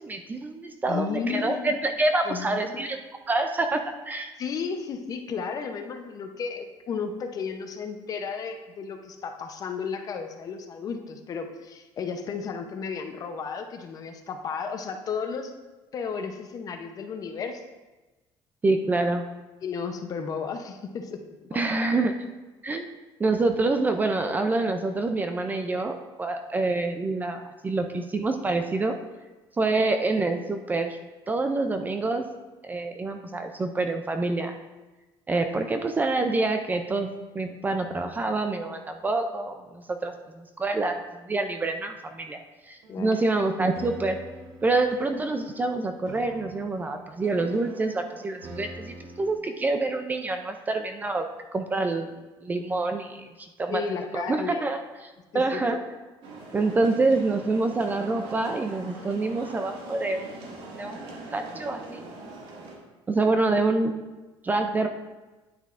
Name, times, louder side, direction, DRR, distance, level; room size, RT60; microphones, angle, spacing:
voice 1, 0.0-3.0 3.3-4.3 18.6-19.2 21.5-22.1 22.6-22.9 23.2-29.0 29.6-31.0 31.3-32.2 32.6-34.6 35.3-42.4 42.7-44.2 44.6-51.3 51.5-52.1 52.4-53.8 54.1-55.8 56.5-62.0 63.1-64.0 64.4-64.9, right 3 dB, 20° right, 6 dB, 0.4 m, -27 dB
voice 2, 0.9-1.8 2.3-2.8 4.4-15.5 15.9-17.6 19.6-21.2 21.5-21.6 42.9-43.2 53.7-54.7 55.3-55.6, left 5 dB, 40° left, 6 dB, 0.7 m, -33 dB
sound 1, 42.8-49.3, right 2 dB, 90° right, 1.2 m, -45 dB
sound 2, 56.2-62.7, right 2 dB, 65° right, 1.7 m, -42 dB
9.6 x 8.7 x 2.5 m, 1.2 s
cardioid pair, 150°, 10 cm